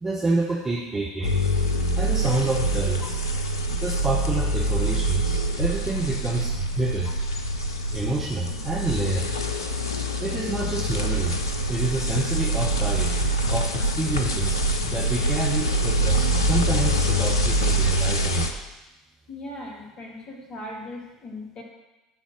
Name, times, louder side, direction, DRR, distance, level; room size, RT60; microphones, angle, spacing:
voice 1, 0.0-1.4 2.0-3.2 3.8-7.1 7.9-9.3 10.2-11.4 11.7-13.1 13.5-18.5, right 2 dB, 20° right, -2 dB, 1.1 m, -28 dB
sound 1, 1.2-18.5, right 1 dB, 80° left, 0.6 m, -25 dB
voice 2, 19.3-21.6, left 1 dB, 40° left, -2 dB, 2.3 m, -38 dB
9.7 x 4.0 x 6.4 m, 1.0 s
figure-of-eight pair, 65°, 2 cm